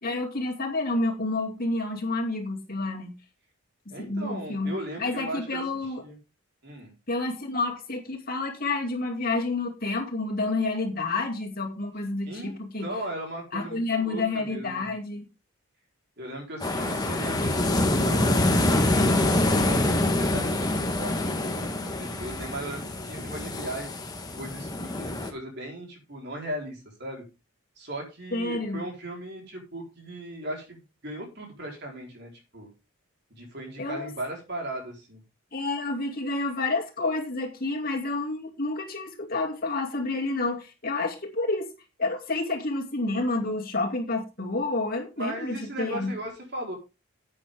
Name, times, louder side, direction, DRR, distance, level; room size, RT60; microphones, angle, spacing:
voice 1, 0.0-3.1 3.9-6.0 7.1-12.9 13.5-15.3 28.3-28.9 33.8-34.1 35.5-41.7 42.0-46.1, left 2 dB, 45° left, 1 dB, 2.5 m, -29 dB
voice 2, 3.9-6.2 6.6-6.9 12.2-14.9 16.2-23.9 24.4-27.2 27.8-32.7 33.3-35.2 45.2-46.7, right 1 dB, 50° right, 1 dB, 4.3 m, -38 dB
sound 1, 16.6-25.3, left 1 dB, 15° left, 1.4 m, -25 dB
11.0 x 8.9 x 3.7 m, 0.28 s
head